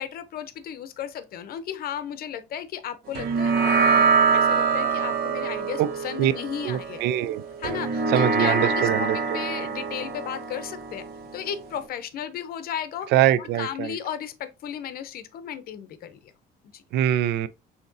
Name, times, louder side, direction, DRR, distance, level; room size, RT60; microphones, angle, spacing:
voice 1, 0.0-7.0 7.6-9.1 9.3-11.0 11.3-13.1 13.4-16.3 16.6-16.8, left 9 dB, 65° left, 0.7 m, -34 dB
sound 1, 3.2-11.9, right 5 dB, 65° right, 1.0 m, -25 dB
voice 2, 6.6-7.4 8.1-9.2 13.1-13.9 16.9-17.5, right 12 dB, 80° right, 0.4 m, -23 dB
6.4 x 2.9 x 2.6 m
cardioid pair, 110°, 17 cm